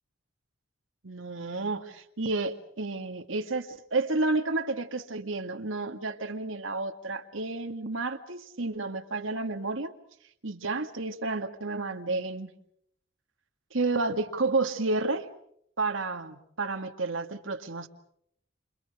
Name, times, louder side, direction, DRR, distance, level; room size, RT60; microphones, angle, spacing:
voice 1, 1.0-9.9 10.4-12.5 13.7-15.3 15.8-17.9, right 3 dB, 85° right, 6 dB, 2.1 m, -31 dB
29.5 x 28.0 x 5.0 m, 0.69 s
head